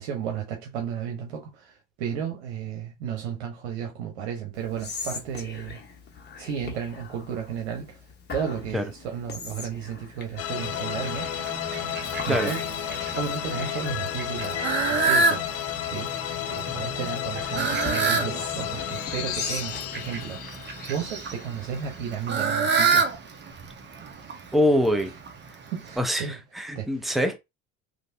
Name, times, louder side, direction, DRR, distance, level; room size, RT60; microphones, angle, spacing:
voice 1, 0.0-5.8 6.4-8.0 8.3-11.3 12.2-12.6 13.1-15.4 15.9-16.1 16.5-20.5 20.9-23.1 25.7-26.4 26.7-26.9, right 8 dB, 85° right, 0.9 m, -33 dB
Whispering, 4.5-22.1, left 5 dB, 30° left, 1.2 m, -42 dB
sound 1, 10.4-21.8, left 12 dB, 45° left, 0.5 m, -32 dB
Fowl, 10.6-26.0, right 4 dB, 35° right, 1.0 m, -29 dB
voice 2, 24.5-25.1 26.0-26.3 26.6-27.4, equal, ahead, 0.6 m, -23 dB
3.1 x 2.6 x 2.7 m
hypercardioid pair, 75°, 33 cm